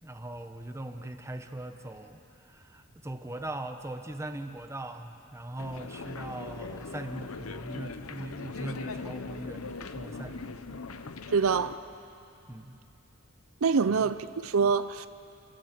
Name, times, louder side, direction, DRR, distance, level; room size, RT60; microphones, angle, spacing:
voice 1, 0.0-10.8 12.5-12.8 13.9-14.1, right 1 dB, 15° right, 6 dB, 1.0 m, -40 dB
sound 1, 5.6-11.8, left 3 dB, 80° left, 0.9 m, -40 dB
voice 2, 11.3-11.8 13.6-15.1, right 5 dB, 70° right, 13 dB, 0.6 m, -25 dB
28.5 x 16.0 x 7.6 m, 2.7 s
head